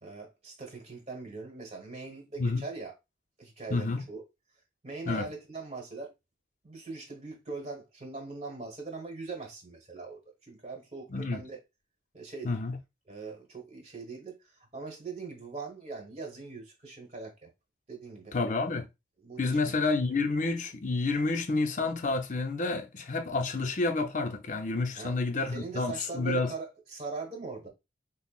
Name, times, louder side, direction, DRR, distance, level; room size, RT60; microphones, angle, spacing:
voice 1, 0.0-2.9 3.4-4.2 4.8-6.1 6.6-11.6 12.1-12.6 13.1-17.5 17.9-18.4 19.2-20.0 25.0-25.1 25.5-27.7, right 4 dB, 35° right, 1.2 m, -41 dB
voice 2, 3.7-4.0 5.1-5.3 11.1-11.4 12.4-12.8 18.3-18.9 19.4-26.5, left 3 dB, 40° left, 0.6 m, -29 dB
5.6 x 2.0 x 2.4 m
head